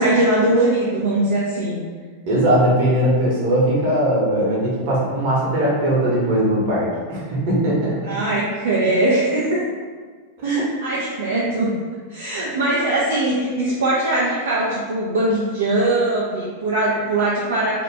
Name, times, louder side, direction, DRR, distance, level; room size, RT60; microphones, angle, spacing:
voice 1, 0.0-1.8 8.1-9.6 10.4-11.8 12.1-17.8, right 2 dB, 65° right, -6 dB, 0.5 m, -21 dB
voice 2, 2.3-8.2 10.4-10.7, right 1 dB, 50° right, -5 dB, 1.0 m, -19 dB
2.8 x 2.4 x 3.4 m, 1.6 s
figure-of-eight pair, 90°, 0 cm